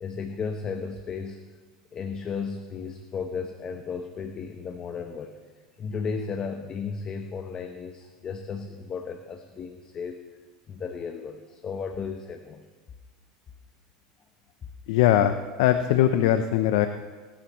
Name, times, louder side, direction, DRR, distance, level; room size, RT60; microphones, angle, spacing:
voice 1, 0.0-1.4 1.9-5.4 5.8-10.2 10.7-12.7, left 5 dB, 35° left, 6 dB, 1.0 m, -34 dB
voice 2, 14.9-16.9, left 11 dB, 75° left, 9 dB, 0.7 m, -21 dB
23.5 x 11.5 x 3.2 m, 1.4 s
supercardioid pair, 105°, 3 cm